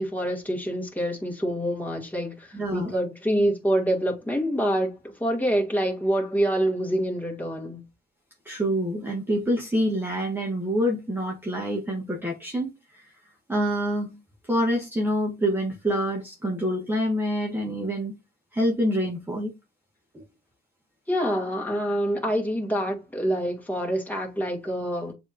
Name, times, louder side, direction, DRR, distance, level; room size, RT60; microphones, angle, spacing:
voice 1, 0.0-7.8 21.1-25.1, equal, 10° left, 2.0 m, -26 dB
voice 2, 2.5-2.9 8.4-13.2 13.5-14.2 14.5-18.1 18.5-19.5 20.1-20.2, equal, 10° right, 1.3 m, -26 dB
7.1 x 3.0 x 2.5 m
cardioid pair, 90°, 20 cm